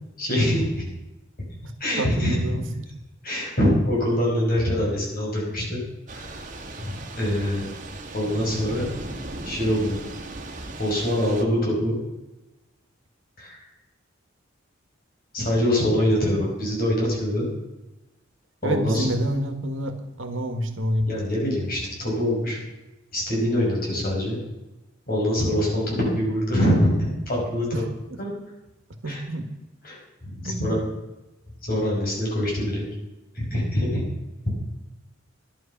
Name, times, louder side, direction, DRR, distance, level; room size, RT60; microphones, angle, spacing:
voice 1, 0.2-0.8 1.8-2.4 3.2-5.8 6.1-6.3 6.8-7.6 8.1-8.9 9.5-9.9 10.8-12.0 13.4-13.6 15.3-17.5 18.6-19.1 21.1-22.6 23.1-24.4 25.1-27.8 28.2-28.3 29.0-29.2 29.8-30.8 31.6-32.9 33.3-34.0 34.5-34.6, equal, 50° left, -2 dB, 5.7 m, -24 dB
voice 2, 2.0-2.8 18.6-21.1 27.7-27.8 28.1-28.2 29.0-29.4 30.4-30.7, equal, 70° right, 8 dB, 1.6 m, -28 dB
Thunder / Rain, 6.1-11.4, right 2 dB, 40° right, 1.7 m, -37 dB
11.5 x 11.5 x 5.9 m, 1.0 s
head